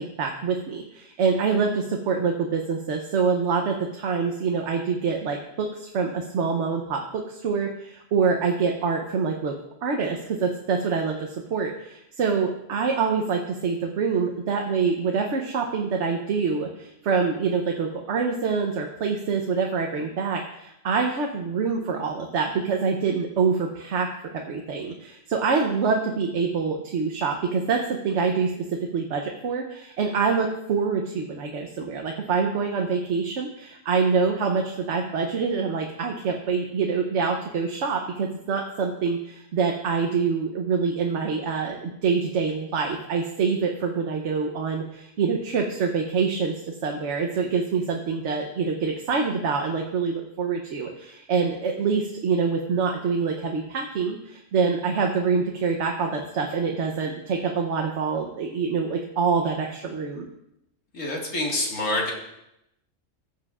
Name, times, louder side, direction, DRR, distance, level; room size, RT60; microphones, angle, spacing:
voice 1, 0.0-9.5 9.8-28.5 28.9-60.3, right 5 dB, 70° right, 2 dB, 1.1 m, -25 dB
voice 2, 60.9-62.1, left 1 dB, 85° left, -1 dB, 2.2 m, -26 dB
15.0 x 7.6 x 2.4 m, 0.82 s
omnidirectional pair, 1.3 m